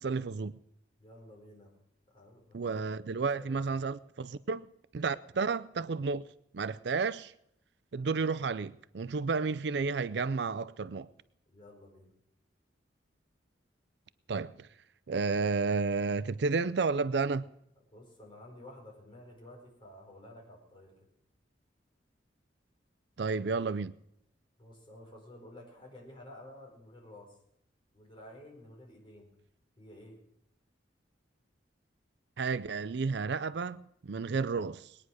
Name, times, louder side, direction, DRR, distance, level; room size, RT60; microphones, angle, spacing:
voice 1, 0.0-0.5 2.5-4.7 4.9-6.3 6.5-7.3 7.9-11.1 14.3-14.7 15.1-17.5 23.2-23.9 32.4-35.0, right 4 dB, 65° right, 0.5 m, -31 dB
voice 2, 1.0-1.7 2.1-3.8 11.5-12.1 17.9-20.9 24.6-27.4 27.9-29.3 29.8-30.2, left 1 dB, 25° left, 4.7 m, -52 dB
20.5 x 9.8 x 6.3 m
head